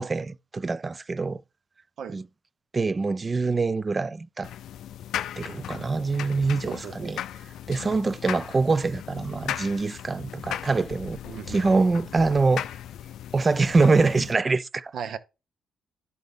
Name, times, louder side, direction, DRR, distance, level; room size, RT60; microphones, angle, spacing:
voice 1, 0.0-1.4 2.1-2.2 2.7-4.5 5.4-7.2 7.7-11.2 11.5-12.6 13.3-14.9, right 3 dB, 30° right, 0.3 m, -24 dB
sound 1, 4.4-14.3, left 11 dB, 75° left, 0.4 m, -37 dB
voice 2, 6.7-7.2 11.2-12.0 14.9-15.2, right 7 dB, 65° right, 0.8 m, -37 dB
11.0 x 4.0 x 3.5 m
cardioid pair, 90°, 0 cm